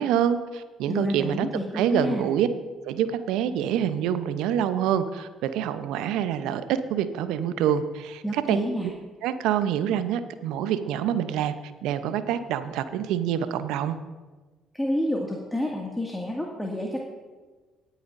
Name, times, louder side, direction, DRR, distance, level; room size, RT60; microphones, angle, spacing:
voice 1, 0.0-1.5 1.7-2.5 2.9-6.6 6.9-8.6 9.2-11.5 11.8-14.0, right 9 dB, 70° right, 11 dB, 0.7 m, -26 dB
voice 2, 0.9-2.3 8.2-8.9 14.7-17.0, left 1 dB, 10° left, -1 dB, 2.1 m, -29 dB
18.0 x 9.3 x 2.6 m, 1.3 s
hypercardioid pair, 50°, 0 cm